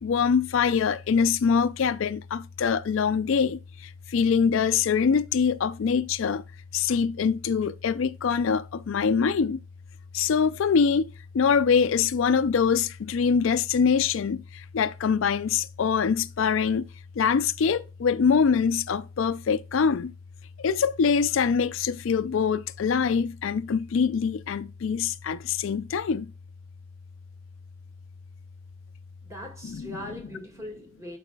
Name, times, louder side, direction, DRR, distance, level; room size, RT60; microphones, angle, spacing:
voice 1, 0.0-3.6 4.1-6.4 6.7-9.6 10.1-11.1 11.3-14.4 14.7-16.8 17.2-20.1 20.6-26.3 29.7-30.0, left 6 dB, 70° left, 0.4 m, -24 dB
voice 2, 29.2-31.2, left 1 dB, 15° right, 1.9 m, -40 dB
11.5 x 4.8 x 2.3 m
head